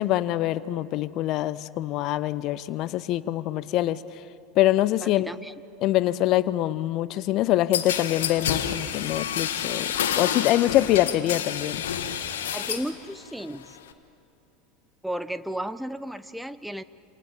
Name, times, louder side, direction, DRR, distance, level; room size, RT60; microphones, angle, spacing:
voice 1, 0.0-4.0 4.6-5.3 5.8-11.8, left 14 dB, 45° left, 18 dB, 0.7 m, -24 dB
voice 2, 5.0-5.5 12.5-13.8 15.0-16.8, right 1 dB, ahead, 14 dB, 0.8 m, -34 dB
sound 1, 7.7-12.9 13.3-13.9, left 9 dB, 70° left, 1.5 m, -29 dB
27.5 x 27.5 x 7.3 m, 2.5 s
figure-of-eight pair, 80°, 0 cm